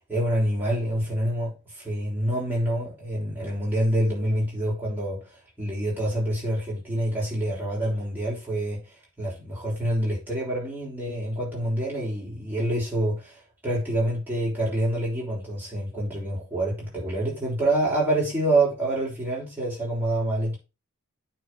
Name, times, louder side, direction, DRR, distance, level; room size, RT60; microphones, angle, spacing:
voice 1, 0.1-5.2 5.6-8.9 9.2-20.6, right 1 dB, 10° right, 6.0 m, -27 dB
9.0 x 4.8 x 5.1 m
head